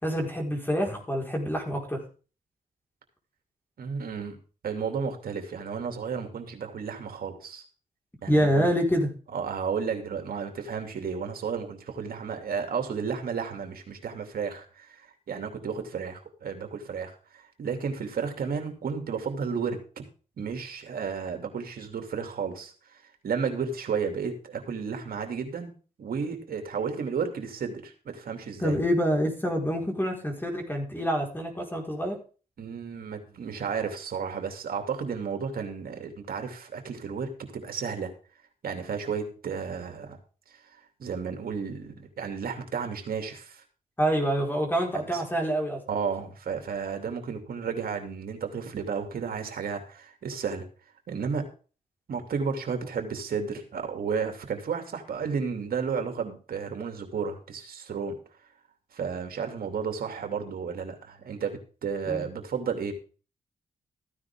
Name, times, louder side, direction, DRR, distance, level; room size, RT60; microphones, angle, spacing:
voice 1, 0.0-2.0 8.3-9.1 28.6-32.2 44.0-45.8 62.1-62.3, equal, 15° left, 1 dB, 4.6 m, -26 dB
voice 2, 3.8-7.6 8.2-8.7 9.3-19.8 20.4-25.7 26.0-28.8 32.6-38.1 38.6-40.2 40.7-43.6 44.9-45.2 45.9-50.6 51.1-51.4 52.1-58.2 58.9-62.9, right 6 dB, 70° right, 5 dB, 2.7 m, -33 dB
14.5 x 9.8 x 3.7 m, 0.37 s
cardioid pair, 65°, 16 cm